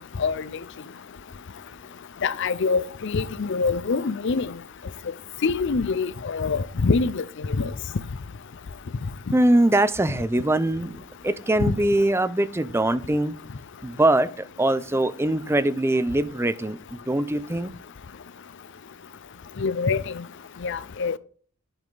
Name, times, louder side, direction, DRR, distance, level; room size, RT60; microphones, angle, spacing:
voice 1, 2.2-4.5 5.4-7.2 7.6-7.7 11.6-11.7 19.6-20.0 20.6-21.2, left 4 dB, 60° left, 0.5 m, -24 dB
voice 2, 9.3-13.3 13.8-17.7, right 1 dB, 10° right, 0.5 m, -22 dB
10.5 x 5.3 x 3.9 m
head